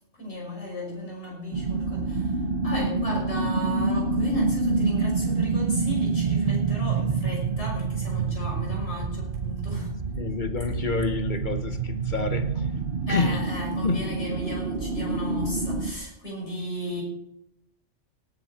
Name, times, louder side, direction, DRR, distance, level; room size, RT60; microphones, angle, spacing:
voice 1, 0.0-9.9 13.1-17.0, equal, 60° left, 6.4 m, -35 dB
sound 1, 1.5-15.9, right 4 dB, 50° right, 1.3 m, -27 dB
voice 2, 10.1-12.7 13.1-13.5 13.8-14.0, left 4 dB, 40° left, 1.2 m, -28 dB
18.5 x 10.5 x 4.3 m
omnidirectional pair, 1.3 m